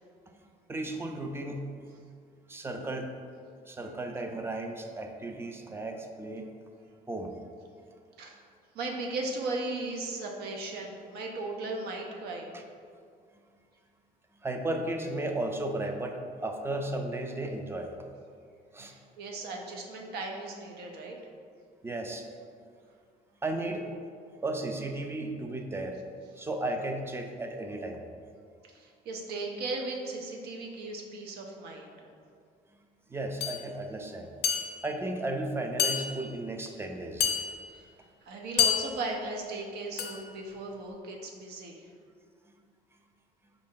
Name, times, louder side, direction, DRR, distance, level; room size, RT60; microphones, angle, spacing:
voice 1, 0.7-1.7 2.5-3.1 3.7-6.5 7.1-7.3 12.5-12.6 14.4-17.9 18.7-19.0 21.8-22.3 23.4-23.9 24.4-26.0 26.4-28.0 33.1-34.3 34.8-37.3, right 2 dB, 15° right, 4 dB, 0.4 m, -34 dB
voice 2, 8.7-12.5 18.9-21.2 28.7-32.1 37.7-37.9 38.2-41.8, right 2 dB, 70° right, 1 dB, 0.6 m, -37 dB
sound 1, 33.4-33.6 34.4-35.0 35.8-36.4 37.2-37.8 38.6-39.2 40.0-40.3, left 8 dB, 75° left, 0.5 m, -29 dB
4.6 x 2.5 x 3.6 m, 2.2 s
cardioid pair, 110°, 17 cm